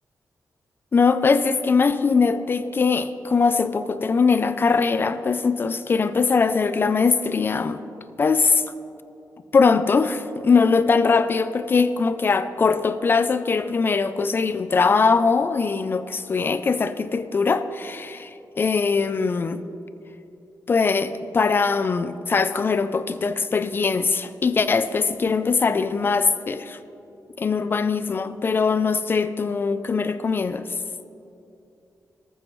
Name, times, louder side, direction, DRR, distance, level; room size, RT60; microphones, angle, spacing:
voice 1, 0.9-7.8 8.2-8.6 9.5-19.6 20.7-26.8 27.4-30.7, left 4 dB, 35° left, 12 dB, 0.3 m, -21 dB
14.0 x 13.0 x 3.1 m, 2.8 s
wide cardioid pair, 175°, 7 cm